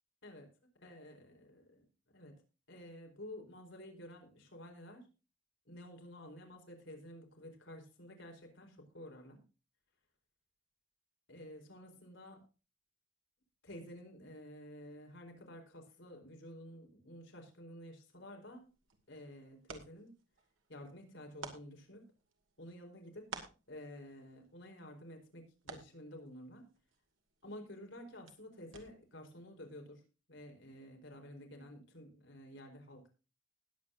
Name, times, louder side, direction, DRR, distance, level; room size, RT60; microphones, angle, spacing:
voice 1, 0.2-0.5 0.8-2.4 2.7-5.1 5.7-9.4 11.3-12.5 13.6-18.7 19.1-20.2 20.7-22.1 22.6-23.3 23.7-26.7 27.4-30.0 30.3-33.1, left 1 dB, 65° left, 3 dB, 4.4 m, -51 dB
sound 1, 18.5-29.2, right 4 dB, 85° right, 2.6 m, -55 dB
20.0 x 8.4 x 2.7 m, 0.32 s
head